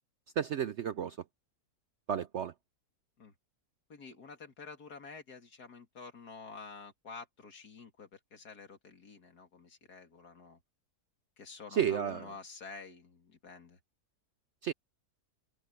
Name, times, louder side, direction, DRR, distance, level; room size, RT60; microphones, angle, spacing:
voice 1, 0.4-1.2 2.1-2.5 11.7-12.3 14.6-14.7, right 9 dB, 65° right, 0.7 m, -32 dB
voice 2, 3.9-10.6 11.4-13.8, left 4 dB, 75° left, 2.9 m, -49 dB
open air
omnidirectional pair, 1.7 m